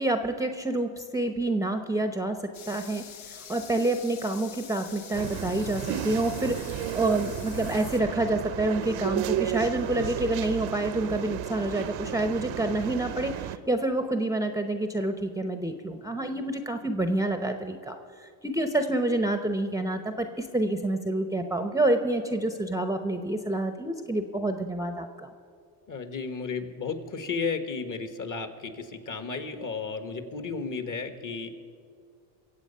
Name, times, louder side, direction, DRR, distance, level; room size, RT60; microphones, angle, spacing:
voice 1, 0.0-2.4 2.7-3.0 3.3-13.3 13.7-25.3, right 2 dB, 5° right, 7 dB, 0.7 m, -28 dB
sound 1, 2.5-8.0, left 7 dB, 75° left, 1.5 m, -45 dB
sound 2, 5.1-13.6, right 11 dB, 65° right, 0.8 m, -33 dB
voice 2, 25.9-31.5, left 5 dB, 40° left, 9 dB, 1.4 m, -33 dB
23.0 x 8.0 x 5.5 m, 2.2 s
supercardioid pair, 90°, 49 cm